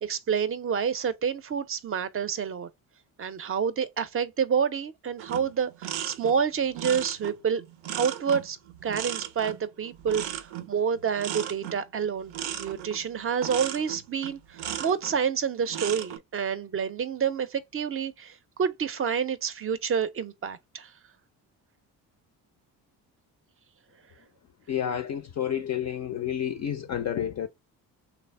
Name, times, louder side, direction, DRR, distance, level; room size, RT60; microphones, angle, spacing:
voice 1, 0.0-2.7 3.2-7.6 8.0-8.6 8.8-12.3 12.6-20.9, right 7 dB, 30° right, 0.5 m, -28 dB
sound 1, 5.2-15.2 15.6-16.2, right 10 dB, 80° right, 0.6 m, -36 dB
voice 2, 24.7-27.5, left 9 dB, 40° left, 0.4 m, -30 dB
3.3 x 2.0 x 3.2 m
hypercardioid pair, 55°, 46 cm